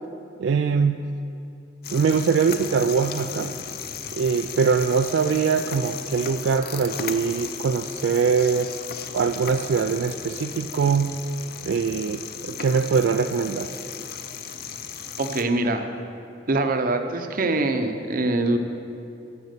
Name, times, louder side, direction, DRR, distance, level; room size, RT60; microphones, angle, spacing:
voice 1, 0.4-1.0 1.9-3.6 4.1-8.7 9.1-11.2 11.6-13.7, right 5 dB, 75° right, 7 dB, 0.3 m, -22 dB
sound 1, 1.8-15.4, left 7 dB, 55° left, 0.6 m, -36 dB
voice 2, 15.2-15.9 16.5-18.6, right 2 dB, 50° right, 6 dB, 0.8 m, -23 dB
10.5 x 7.1 x 6.7 m, 2.7 s
head